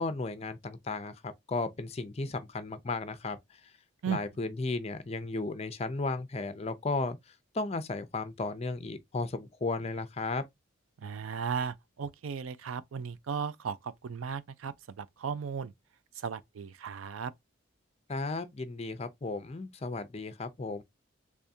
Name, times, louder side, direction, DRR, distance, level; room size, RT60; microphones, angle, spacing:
voice 1, 0.0-3.4 4.1-7.2 7.5-10.4 18.1-20.8, left 3 dB, 30° left, 0.5 m, -34 dB
voice 2, 11.0-15.7 16.2-17.3, right 6 dB, 90° right, 0.4 m, -36 dB
3.5 x 3.5 x 2.6 m
head